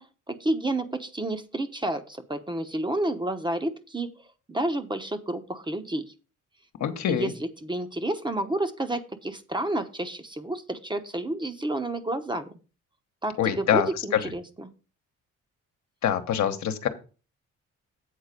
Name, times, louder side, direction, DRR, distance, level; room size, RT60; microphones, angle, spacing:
voice 1, 0.0-4.1 4.5-6.0 7.1-12.6 13.2-14.7, right 1 dB, 15° right, 8 dB, 0.9 m, -30 dB
voice 2, 6.8-7.3 13.4-14.2 16.0-16.9, left 9 dB, 65° left, 7 dB, 1.2 m, -25 dB
8.3 x 4.0 x 6.7 m, 0.35 s
cardioid pair, 90°, 30 cm